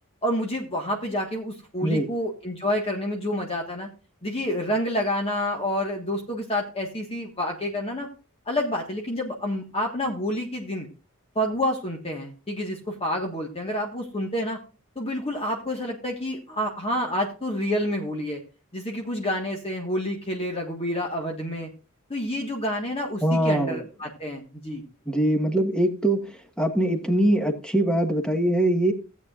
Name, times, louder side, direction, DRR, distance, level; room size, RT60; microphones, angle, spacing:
voice 1, 0.2-3.9 4.2-8.1 8.4-10.9 11.3-14.6 14.9-18.4 18.7-21.7 22.1-24.8, left 1 dB, 25° left, 1.5 m, -28 dB
voice 2, 23.2-23.8 25.1-28.9, right 1 dB, 5° left, 1.4 m, -23 dB
16.5 x 8.5 x 2.4 m
head